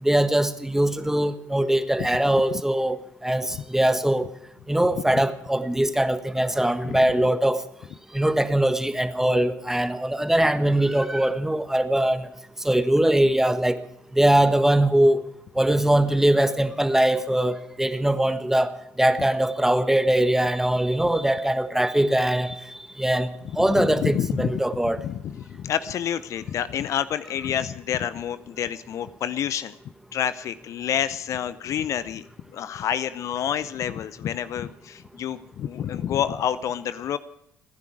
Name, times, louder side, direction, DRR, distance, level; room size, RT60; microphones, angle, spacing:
voice 1, 0.0-4.3 4.7-7.6 8.1-12.3 12.6-13.8 14.1-15.2 15.5-22.6 23.0-23.3 23.6-25.0, right 1 dB, 5° right, 1.5 m, -21 dB
voice 2, 23.7-24.6 25.0-29.8 30.1-32.3 32.5-37.2, left 9 dB, 55° left, 0.6 m, -28 dB
27.5 x 10.5 x 4.9 m
hypercardioid pair, 55°, 6 cm